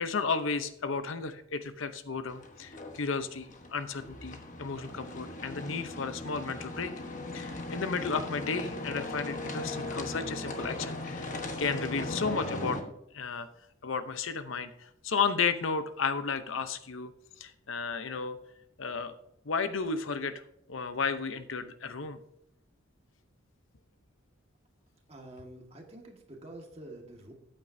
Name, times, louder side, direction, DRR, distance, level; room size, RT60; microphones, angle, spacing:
voice 1, 0.0-6.9 7.3-12.8 13.1-13.5 13.8-17.1 17.4-18.4 18.8-19.2 19.5-20.3 20.7-22.2, left 5 dB, 70° left, 10 dB, 0.7 m, -33 dB
sound 1, 2.3-12.8, left 2 dB, 35° left, 1.1 m, -38 dB
voice 2, 25.1-27.3, right 1 dB, 30° right, 2 dB, 1.6 m, -47 dB
13.5 x 8.9 x 2.7 m, 0.78 s
head